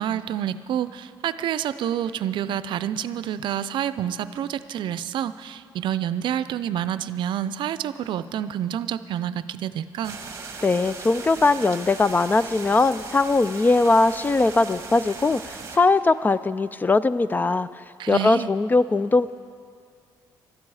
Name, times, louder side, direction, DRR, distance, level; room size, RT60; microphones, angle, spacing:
voice 1, 0.0-10.2 18.0-18.5, right 10 dB, 70° right, 14 dB, 0.5 m, -28 dB
A Thunderstorm Arrives in Suburban NJ, 10.0-15.8, right 4 dB, 35° right, 1.4 m, -38 dB
voice 2, 10.6-17.7 18.1-19.3, left 3 dB, 20° left, 16 dB, 0.4 m, -20 dB
20.5 x 12.5 x 4.8 m, 2.3 s
cardioid pair, 110°, 8 cm